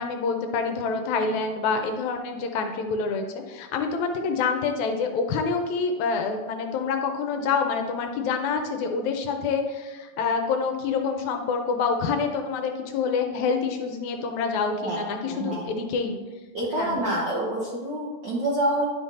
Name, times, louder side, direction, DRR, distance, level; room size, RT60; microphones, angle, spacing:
voice 1, 0.0-16.2 16.8-17.2, left 5 dB, 75° left, 5 dB, 1.9 m, -27 dB
voice 2, 14.8-15.6 16.5-18.8, right 1 dB, 75° right, -3 dB, 1.0 m, -27 dB
10.5 x 3.7 x 4.1 m, 1.3 s
omnidirectional pair, 3.5 m